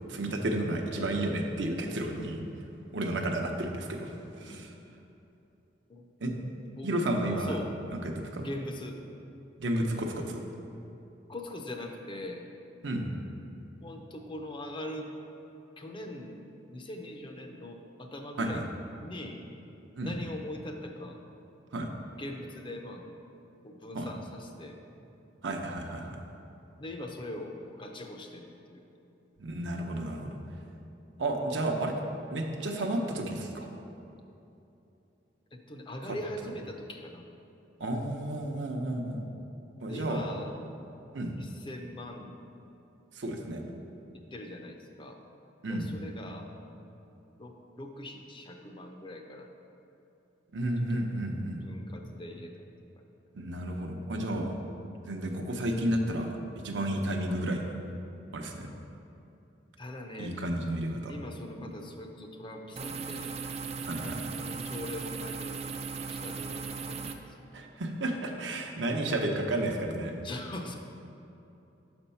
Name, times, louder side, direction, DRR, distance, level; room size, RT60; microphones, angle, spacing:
voice 1, 0.1-2.4 2.9-4.1 4.4-4.7 6.2-6.3 6.8-7.6 8.0-8.5 9.6-10.4 12.8-13.0 18.4-18.6 20.0-20.1 21.7-21.9 23.9-24.1 25.4-26.2 29.4-30.3 31.2-31.9 32.3-33.7 37.8-39.2 39.8-40.2 41.1-41.3 43.2-43.6 45.6-45.9 50.5-51.6 53.3-54.6 55.0-56.4 56.6-57.7 58.3-58.7 60.2-61.1 63.9-64.3 67.5-70.1, right 1 dB, 75° right, 2 dB, 0.7 m, -32 dB
voice 2, 4.4-4.7 5.9-6.1 6.7-7.7 8.4-9.0 11.3-12.4 13.8-15.1 15.8-16.4 16.7-18.6 19.0-19.5 20.0-21.2 22.2-23.0 23.6-24.8 26.8-28.8 35.5-37.3 39.9-40.5 41.4-42.4 44.3-45.2 45.7-46.5 47.4-49.5 50.9-51.0 51.6-52.6 59.8-60.4 61.1-63.4 63.8-65.6 66.0-67.7 68.1-68.5 70.2-70.7, left 1 dB, 25° left, 3 dB, 0.5 m, -42 dB
sound 1, 62.8-67.1, right 5 dB, 35° right, 0.3 m, -37 dB
6.1 x 4.3 x 5.5 m, 2.8 s
head